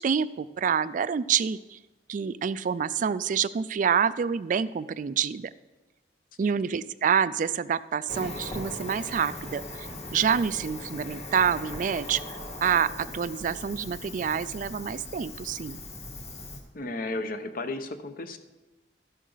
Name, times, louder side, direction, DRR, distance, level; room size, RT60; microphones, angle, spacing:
voice 1, 0.0-1.8 2.1-5.5 6.4-15.8, right 7 dB, 45° right, 16 dB, 0.3 m, -27 dB
Cricket, 8.1-16.6, left 1 dB, 35° left, 1.8 m, -39 dB
voice 2, 16.7-18.4, left 2 dB, 50° left, 9 dB, 0.9 m, -34 dB
13.0 x 11.0 x 4.0 m, 1.1 s
head